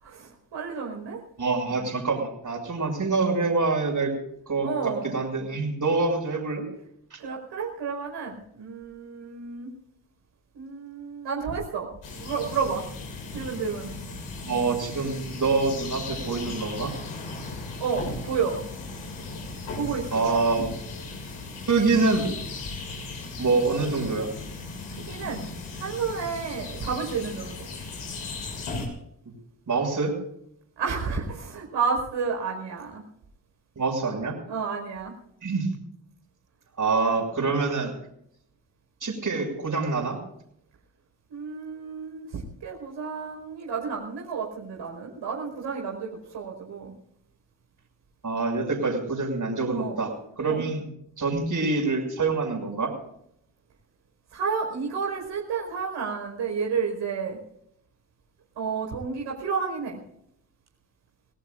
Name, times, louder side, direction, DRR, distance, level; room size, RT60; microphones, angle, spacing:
voice 1, 0.0-1.2 4.6-5.1 7.2-9.7 10.5-11.9 12.2-12.8 13.3-13.9 17.8-18.6 19.7-20.3 23.4-23.5 25.0-25.4 25.8-27.6 30.8-33.0 34.5-35.1 41.3-46.9 49.7-50.0 50.5-50.6 54.3-57.4 58.5-60.0, right 5 dB, 75° right, -1 dB, 5.1 m, -31 dB
voice 2, 1.4-4.1 4.5-6.6 7.1-7.2 14.4-16.9 20.1-20.8 21.7-22.3 23.4-24.3 29.7-30.1 33.8-34.4 35.4-35.7 36.8-38.0 39.0-40.2 48.2-50.8 51.2-52.9, right 3 dB, 45° right, 3 dB, 6.2 m, -26 dB
sound 1, 12.0-28.9, left 3 dB, 75° left, 6.6 m, -37 dB
27.0 x 17.5 x 2.6 m, 0.74 s
supercardioid pair, 50°, 44 cm